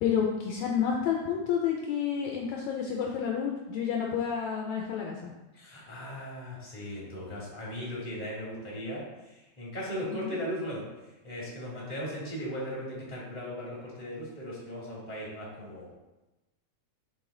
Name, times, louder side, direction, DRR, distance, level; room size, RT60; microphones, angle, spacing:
voice 1, 0.0-5.3 10.1-10.4, left 7 dB, 75° left, 0 dB, 1.9 m, -30 dB
voice 2, 5.5-9.0 9.6-10.9 11.2-15.9, equal, 15° left, -6 dB, 2.3 m, -37 dB
7.4 x 5.4 x 3.8 m, 1.1 s
omnidirectional pair, 3.6 m